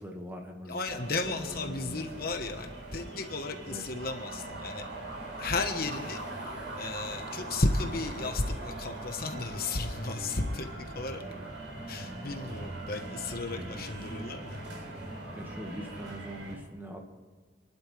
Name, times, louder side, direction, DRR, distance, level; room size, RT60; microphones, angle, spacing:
voice 1, 0.0-0.8 1.2-2.2 3.7-3.8 13.5-13.9 15.3-17.1, equal, 10° right, 2 dB, 1.7 m, -42 dB
voice 2, 0.7-4.9 5.4-6.2 6.7-11.2 11.9-14.6, left 2 dB, 55° left, 5 dB, 1.2 m, -34 dB
sound 1, 0.8-16.6, right 1 dB, 80° right, 4.6 m, -41 dB
27.0 x 11.5 x 3.3 m, 1.5 s
head